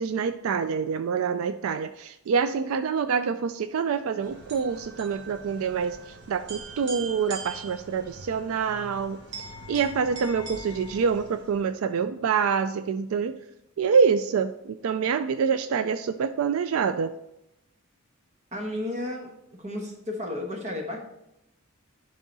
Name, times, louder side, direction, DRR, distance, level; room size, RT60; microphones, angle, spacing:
voice 1, 0.0-9.2 9.7-13.4 13.8-17.1, right 6 dB, 80° right, 10 dB, 0.3 m, -26 dB
sound 1, 4.2-11.7, right 2 dB, 55° right, 1.3 m, -42 dB
voice 2, 18.5-19.3 19.6-21.0, left 1 dB, 35° right, 2 dB, 1.3 m, -32 dB
11.0 x 3.8 x 4.0 m, 0.85 s
head